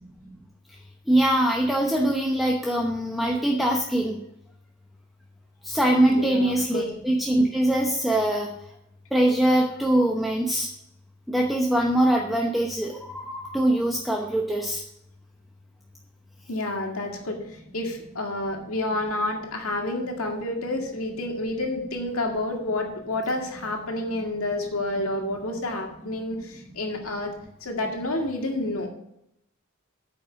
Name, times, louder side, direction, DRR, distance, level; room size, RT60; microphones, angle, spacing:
voice 1, 1.1-4.2 5.7-8.5 9.1-10.7 11.3-14.8, right 1 dB, ahead, 0 dB, 0.9 m, -23 dB
voice 2, 5.9-6.9 16.5-27.3 27.6-28.9, left 1 dB, 85° left, 1 dB, 2.1 m, -29 dB
9.2 x 5.7 x 6.2 m, 0.78 s
head